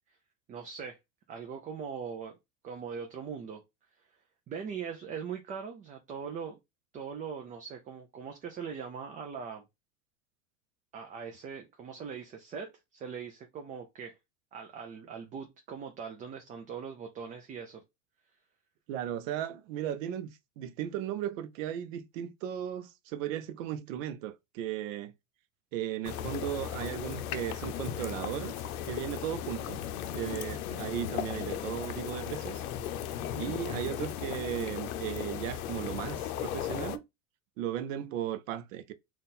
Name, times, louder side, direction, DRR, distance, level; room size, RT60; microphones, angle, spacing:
voice 1, 0.5-1.0 1.3-2.4 2.6-3.6 4.5-6.6 6.9-9.6 10.9-14.2 14.5-17.8, right 6 dB, 20° right, 0.4 m, -41 dB
voice 2, 18.9-20.3 20.6-25.1 25.7-28.6 28.9-29.8 30.1-32.6 33.4-37.0 37.6-38.9, right 11 dB, 65° right, 0.7 m, -36 dB
sound 1, 26.0-37.0, left 10 dB, 85° left, 0.6 m, -36 dB
Rattle (instrument), 26.8-27.3 27.6-34.8, left 3 dB, 10° left, 0.8 m, -58 dB
3.8 x 2.5 x 4.1 m
supercardioid pair, 130°, 42 cm